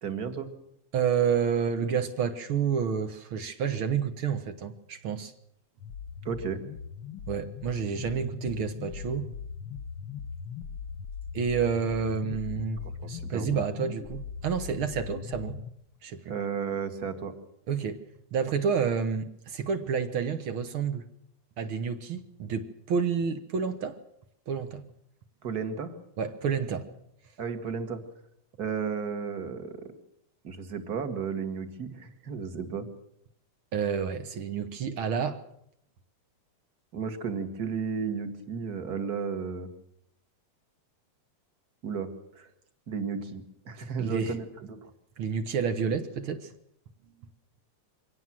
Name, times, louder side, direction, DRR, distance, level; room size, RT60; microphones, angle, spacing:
voice 1, 0.0-0.5 6.2-6.6 13.0-13.6 16.3-17.3 25.4-25.9 27.4-28.0 28.6-29.9 30.4-32.9 36.9-39.7 41.8-42.1 42.4-42.5 42.9-44.9, right 6 dB, 35° right, 8 dB, 2.2 m, -33 dB
voice 2, 0.9-5.3 7.3-9.3 11.3-12.8 13.1-15.6 16.0-16.3 17.7-18.0 18.3-21.0 21.6-24.0 24.5-24.8 26.2-26.9 33.7-35.4 43.8-44.3 45.2-46.5, right 6 dB, 55° right, 9 dB, 1.7 m, -29 dB
sound 1, 5.8-15.7, left 6 dB, 55° left, 1.6 m, -39 dB
24.0 x 17.5 x 7.6 m, 0.75 s
omnidirectional pair, 3.4 m